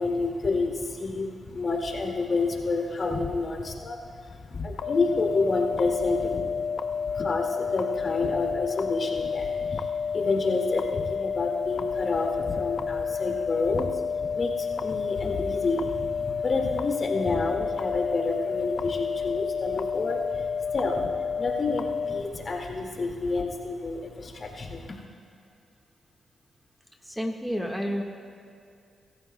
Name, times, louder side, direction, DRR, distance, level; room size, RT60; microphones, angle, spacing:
voice 1, 0.0-6.4 7.0-14.0 14.3-21.1 21.4-25.0, left 3 dB, 50° left, 0 dB, 2.0 m, -29 dB
sound 1, 4.8-22.2, left 6 dB, 65° left, 0.5 m, -30 dB
voice 2, 27.0-28.0, equal, ahead, 1 dB, 1.5 m, -30 dB
23.5 x 14.0 x 2.2 m, 2.5 s
cardioid pair, 65°, 0 cm